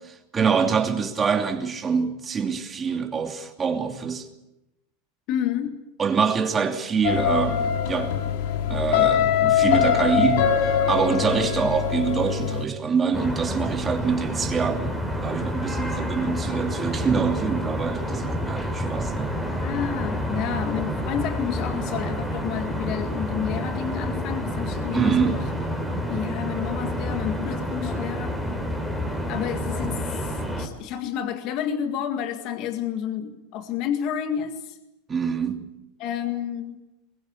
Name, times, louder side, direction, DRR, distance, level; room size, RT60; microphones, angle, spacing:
voice 1, 0.3-4.3 6.0-8.1 8.7-19.3 24.9-25.4 35.1-35.7, right 6 dB, 20° right, 2.8 m, -25 dB
voice 2, 5.3-5.8 11.3-11.4 15.9-16.4 19.6-25.5 26.1-28.4 29.3-34.8 36.0-36.8, left 9 dB, 45° left, 2.0 m, -30 dB
sound 1, 7.0-12.6, left 8 dB, 65° left, 2.8 m, -22 dB
sound 2, 13.1-30.7, equal, 5° left, 3.7 m, -29 dB
23.0 x 22.0 x 8.5 m
supercardioid pair, 150°, 0 cm